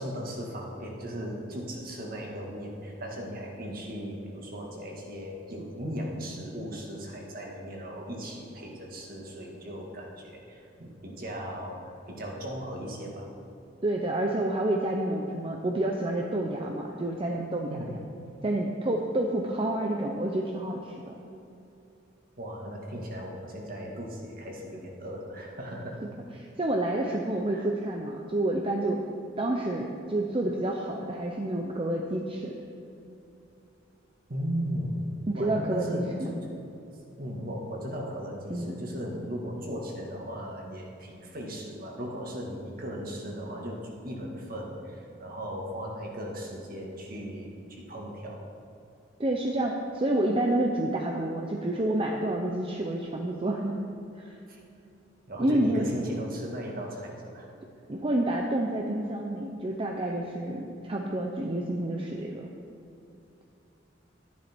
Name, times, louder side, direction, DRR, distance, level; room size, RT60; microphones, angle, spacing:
voice 1, 0.0-13.3 17.7-17.9 22.4-26.0 27.1-27.2 27.5-27.7 34.3-34.9 35.3-36.5 37.2-48.4 54.5-54.6 55.3-57.5, equal, 50° right, -1 dB, 1.9 m, -37 dB
voice 2, 13.8-17.8 18.4-21.1 26.4-29.0 29.4-32.5 35.3-36.3 38.5-38.8 49.2-53.8 54.2-54.4 55.4-55.9 57.9-62.5, right 1 dB, 30° right, 1 dB, 0.7 m, -29 dB
12.5 x 10.5 x 4.5 m, 2.7 s
head